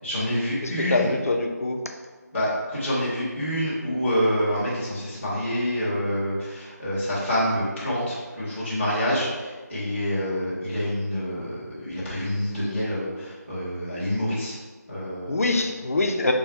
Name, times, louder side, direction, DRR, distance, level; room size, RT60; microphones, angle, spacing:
voice 1, 0.0-1.1 2.3-14.5 14.9-15.4, equal, 5° left, -19 dB, 0.3 m, -27 dB
voice 2, 0.6-1.8 15.3-16.3, left 2 dB, 55° left, 3 dB, 0.6 m, -24 dB
4.9 x 2.2 x 4.4 m, 1.4 s
figure-of-eight pair, 170°, 10 cm